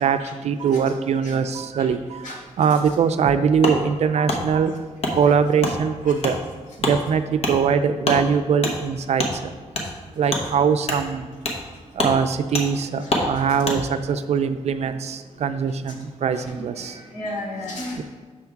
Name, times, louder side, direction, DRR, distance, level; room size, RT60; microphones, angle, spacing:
voice 1, 0.4-2.2 2.6-4.7 5.1-6.4 6.8-9.2 10.2-11.3 12.0-16.9 18.0-18.1, right 6 dB, 65° right, 10 dB, 0.4 m, -22 dB
Wood, 3.6-3.8 4.3-4.4 5.0-5.1 5.6-5.7 6.2-6.3 6.8-7.0 7.4-7.5 8.0-8.2 8.6-8.7 9.2-9.3 9.7-9.9 10.3-10.4 10.8-11.0 11.4-11.6 11.9-12.1 12.5-12.7 13.1-13.3 13.6-13.8, left 2 dB, 55° left, 1.0 m, -24 dB
voice 2, 13.0-13.4 16.7-18.0, left 1 dB, 90° left, -3 dB, 1.7 m, -34 dB
6.2 x 3.5 x 5.8 m, 1.4 s
wide cardioid pair, 130°, 12 cm